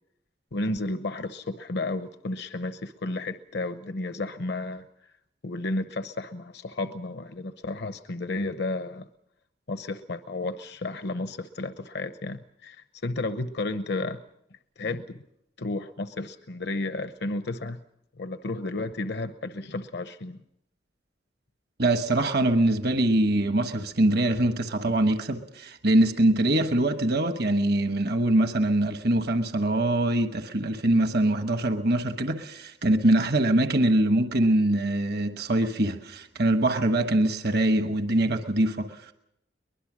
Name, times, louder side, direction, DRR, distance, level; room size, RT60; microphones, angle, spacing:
voice 1, 0.5-4.9 5.4-9.1 9.7-14.2 14.8-15.2 15.6-17.8 18.2-20.4, left 2 dB, 70° left, 0.9 m, -32 dB
voice 2, 21.8-39.1, right 1 dB, 65° right, 1.2 m, -23 dB
23.0 x 20.5 x 6.2 m
head